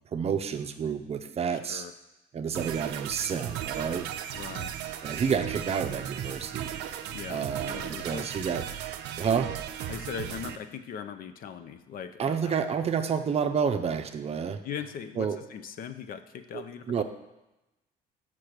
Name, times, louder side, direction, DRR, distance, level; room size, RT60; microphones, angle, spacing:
voice 1, 0.1-1.8 2.3-4.1 5.0-6.7 7.3-8.6 9.2-9.5 12.2-14.6 15.2-15.4 16.5-17.0, right 7 dB, 35° right, 8 dB, 0.6 m, -29 dB
sound 1, 2.5-10.6, right 10 dB, 90° right, 0.5 m, -36 dB
voice 2, 4.3-4.7 7.1-8.5 9.9-12.6 14.6-17.0, left 8 dB, 55° left, 10 dB, 0.6 m, -40 dB
6.0 x 4.5 x 6.5 m, 0.98 s
cardioid pair, 110°, 17 cm